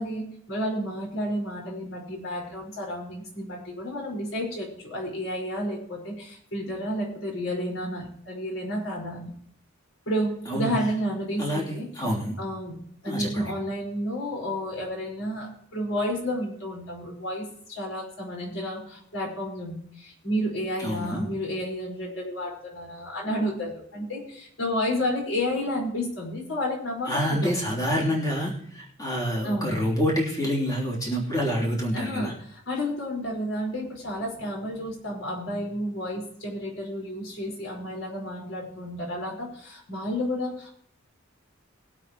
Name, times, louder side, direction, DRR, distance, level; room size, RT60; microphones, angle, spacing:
voice 1, 0.0-9.3 10.1-11.9 12.4-12.8 13.0-27.5 29.4-29.8 31.9-40.7, equal, 70° left, -1 dB, 4.8 m, -31 dB
voice 2, 11.4-12.3 13.1-13.5 20.8-21.3 27.1-32.3, equal, 20° left, -4 dB, 3.2 m, -27 dB
22.5 x 8.0 x 3.0 m, 0.66 s
head